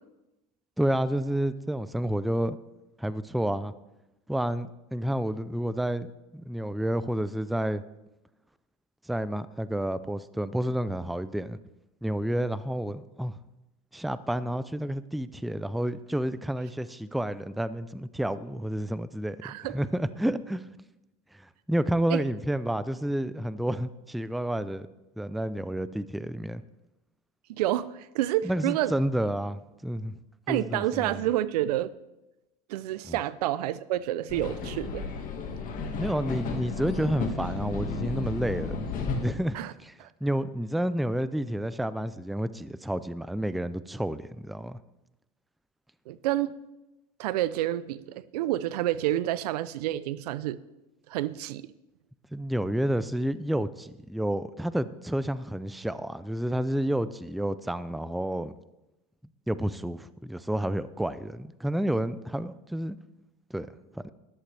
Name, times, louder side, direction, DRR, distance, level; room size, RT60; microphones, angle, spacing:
voice 1, 0.8-2.6 3.0-3.7 4.3-6.1 6.3-7.8 9.1-11.6 12.0-13.4 13.9-20.7 21.3-24.9 25.2-26.6 28.4-30.1 30.5-31.2 33.1-33.2 35.9-39.9 40.2-44.8 52.3-58.5 59.5-63.0 63.5-63.7 64.0-64.1, right 1 dB, ahead, 15 dB, 0.4 m, -30 dB
voice 2, 19.4-19.8 22.1-22.2 27.5-29.0 30.5-31.9 32.7-35.1 39.5-39.7 40.0-40.1 46.1-46.5 47.2-50.6 51.1-51.7, right 14 dB, 80° right, 17 dB, 0.6 m, -29 dB
sound 1, 34.3-39.4, left 4 dB, 40° left, 1.8 m, -33 dB
13.5 x 11.0 x 3.3 m, 0.96 s
supercardioid pair, 105°, 20 cm